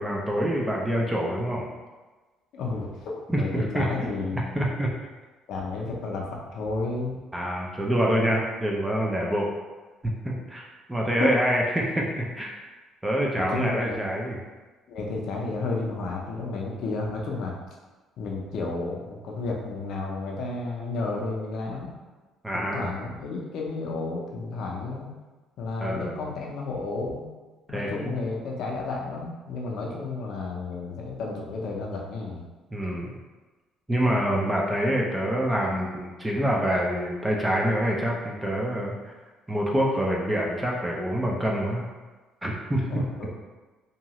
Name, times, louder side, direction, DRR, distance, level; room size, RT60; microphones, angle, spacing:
voice 1, 0.0-1.7 3.3-4.9 7.3-9.5 10.0-12.5 13.0-14.4 22.4-22.9 25.8-26.2 27.7-28.3 29.8-30.0 32.7-33.1 33.9-39.1 39.5-41.9 42.4-42.9, equal, 10° right, -2 dB, 0.3 m, -26 dB
voice 2, 2.5-4.6 5.5-7.2 11.2-11.3 13.5-14.0 14.9-17.5 18.2-22.0 22.5-25.1 25.6-27.2 27.7-32.4 42.9-43.3, left 3 dB, 55° left, -1 dB, 0.5 m, -32 dB
2.8 x 2.3 x 2.9 m, 1.3 s
cardioid pair, 175°, 0 cm